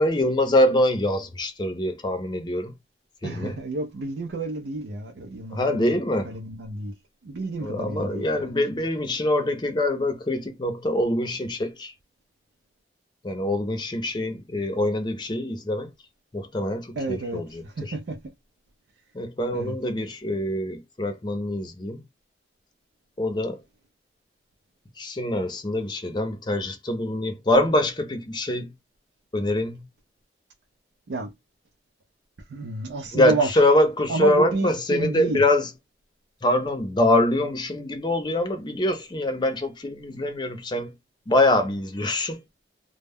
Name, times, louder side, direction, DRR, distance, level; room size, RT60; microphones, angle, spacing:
voice 1, 0.0-2.7 3.2-3.6 5.5-6.3 7.6-11.9 13.2-15.9 16.3-17.5 19.1-22.0 23.2-23.6 25.0-28.7 29.3-29.8 33.1-35.6 36.4-40.9 41.3-42.4, left 1 dB, 25° left, 0.5 m, -24 dB
voice 2, 3.2-6.9 7.2-8.8 17.0-18.2 19.5-19.8 31.1-31.3 32.5-33.6 34.1-35.4, right 3 dB, 75° right, 0.4 m, -30 dB
2.1 x 2.0 x 3.4 m
head